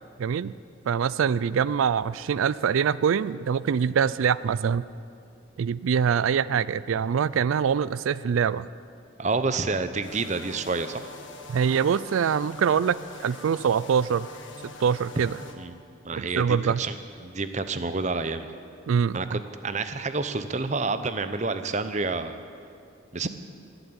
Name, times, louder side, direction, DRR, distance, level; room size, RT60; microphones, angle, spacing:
voice 1, 0.2-0.5 0.9-4.9 5.6-8.7 11.5-14.3 14.8-15.4 16.1-16.8 18.9-19.2, right 7 dB, 85° right, 18 dB, 0.4 m, -24 dB
voice 2, 9.2-11.0 15.6-15.7 16.0-17.0 17.2-18.5 19.1-22.4 23.1-23.3, right 3 dB, 35° right, 11 dB, 0.7 m, -29 dB
sound 1, 10.0-15.5, left 3 dB, 65° left, 1.5 m, -44 dB
20.0 x 8.0 x 8.7 m, 2.4 s
head